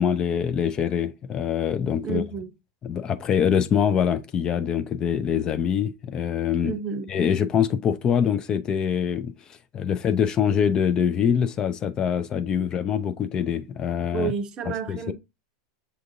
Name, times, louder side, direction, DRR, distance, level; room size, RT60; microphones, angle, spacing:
voice 1, 0.0-2.2 2.8-6.8 7.1-9.3 9.7-14.3 14.7-15.1, left 8 dB, 35° left, 0.4 m, -24 dB
voice 2, 2.0-2.5 6.6-7.1 14.1-15.1, right 6 dB, 40° right, 0.7 m, -30 dB
6.8 x 2.5 x 2.6 m
hypercardioid pair, 95°, 2 cm